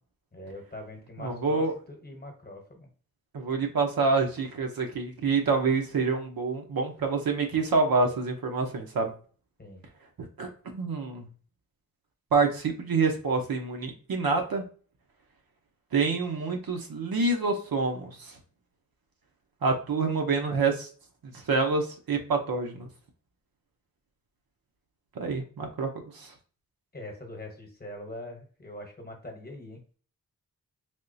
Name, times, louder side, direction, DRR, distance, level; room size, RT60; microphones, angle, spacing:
voice 1, 0.3-2.9 9.6-9.8 26.9-29.8, left 1 dB, 25° left, 2 dB, 0.9 m, -42 dB
voice 2, 1.2-1.7 3.3-9.1 10.4-11.3 12.3-14.6 15.9-18.3 19.6-20.9 21.3-22.9 25.2-25.9 26.1-26.3, right 4 dB, 80° right, 3 dB, 0.8 m, -27 dB
3.5 x 2.9 x 2.6 m, 0.40 s
wide cardioid pair, 135°, 35 cm